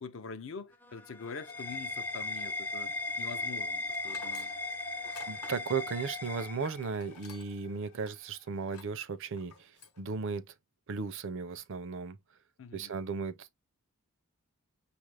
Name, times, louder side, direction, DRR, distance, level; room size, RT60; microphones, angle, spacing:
voice 1, 0.0-4.6 12.6-12.9, left 5 dB, 60° left, 0.5 m, -44 dB
sound 1, 0.7-7.2, left 2 dB, 10° left, 0.4 m, -37 dB
sound 2, 1.2-8.7, left 6 dB, 35° left, 0.9 m, -58 dB
Tools, 3.9-7.7 8.0-8.1 8.6-9.0 9.4-10.0, left 5 dB, 80° left, 1.0 m, -51 dB
voice 2, 5.3-9.7 10.0-10.5 10.9-12.2 12.7-13.5, right 5 dB, 60° right, 0.5 m, -36 dB
5.9 x 2.4 x 3.2 m
head